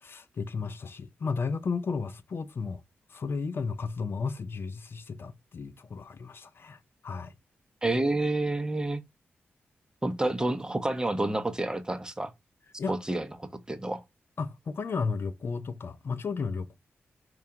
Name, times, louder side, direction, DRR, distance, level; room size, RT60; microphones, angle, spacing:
voice 1, 0.0-2.8 3.1-6.8 7.0-7.3 12.8-12.9 14.4-16.8, left 5 dB, 55° left, 0.4 m, -33 dB
voice 2, 7.8-9.0 10.0-12.3 12.9-14.0, right 2 dB, 15° right, 0.6 m, -29 dB
4.7 x 2.2 x 2.7 m
cardioid pair, 55°, 5 cm